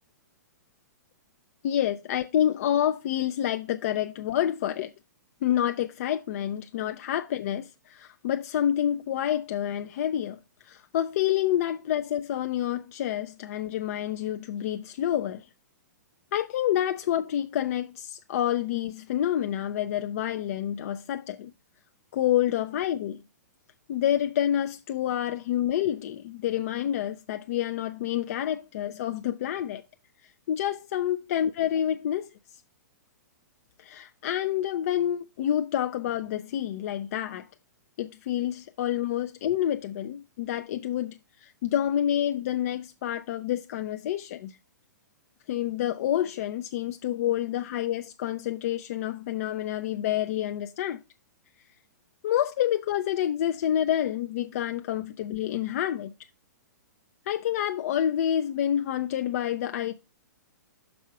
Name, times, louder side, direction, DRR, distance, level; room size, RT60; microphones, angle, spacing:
voice 1, 1.6-4.9 5.4-10.4 10.6-15.4 16.3-21.5 22.1-23.2 23.9-29.8 30.5-32.3 33.8-37.5 38.0-44.5 45.5-51.0 52.2-56.1 57.3-59.9, left 11 dB, 50° left, 0.4 m, -28 dB
6.1 x 4.5 x 5.9 m
figure-of-eight pair, 115°, 10 cm